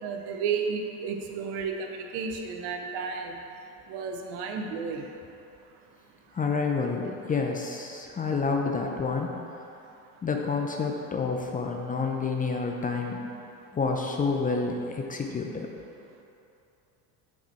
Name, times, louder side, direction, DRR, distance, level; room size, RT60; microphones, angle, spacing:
voice 1, 0.0-3.4 3.9-5.1, right 5 dB, 65° right, 3 dB, 0.8 m, -32 dB
voice 2, 6.3-9.4 10.2-13.3 13.7-15.7, left 4 dB, 20° left, 2 dB, 0.5 m, -29 dB
5.8 x 4.3 x 4.4 m, 2.7 s
supercardioid pair, 90°, 42 cm